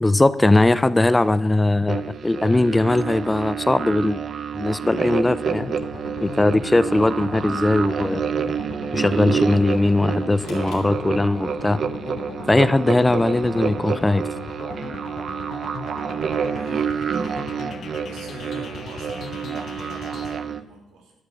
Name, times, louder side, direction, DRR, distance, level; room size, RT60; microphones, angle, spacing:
voice 1, 0.0-4.2 4.5-5.7 6.2-8.2 8.9-11.8 12.5-14.2, left 2 dB, 15° left, 15 dB, 0.4 m, -19 dB
sound 1, 1.9-20.6, right 7 dB, 55° right, 0.7 m, -28 dB
sound 2, 5.6-20.4, left 6 dB, 60° left, 1.0 m, -38 dB
sound 3, 10.4-11.8, left 5 dB, 80° left, 2.8 m, -48 dB
voice 2, 16.3-17.4 18.0-21.1, right 3 dB, 85° right, 0 dB, 3.1 m, -44 dB
12.0 x 6.6 x 7.1 m, 0.89 s
cardioid pair, 90°, 0 cm